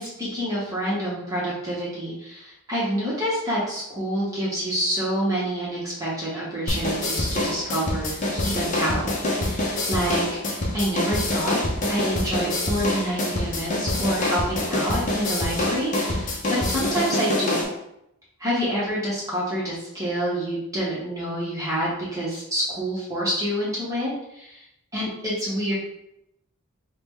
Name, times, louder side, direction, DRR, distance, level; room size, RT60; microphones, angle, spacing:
voice 1, 0.0-11.6 11.9-17.7 18.4-24.6 24.9-25.7, equal, 15° right, -8 dB, 0.9 m, -27 dB
sound 1, 6.7-17.6, left 1 dB, 35° left, 0.6 m, -26 dB
4.5 x 2.1 x 3.6 m, 0.83 s
head